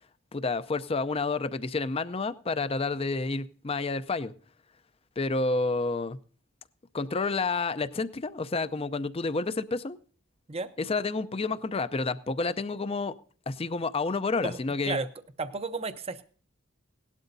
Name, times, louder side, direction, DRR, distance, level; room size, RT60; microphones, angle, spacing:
voice 1, 0.3-4.3 5.2-6.2 6.9-10.0 10.8-13.1 13.5-15.0, left 3 dB, 30° left, 14 dB, 0.5 m, -29 dB
voice 2, 15.4-16.2, right 3 dB, 30° right, 11 dB, 0.6 m, -32 dB
18.0 x 12.0 x 2.6 m, 0.42 s
head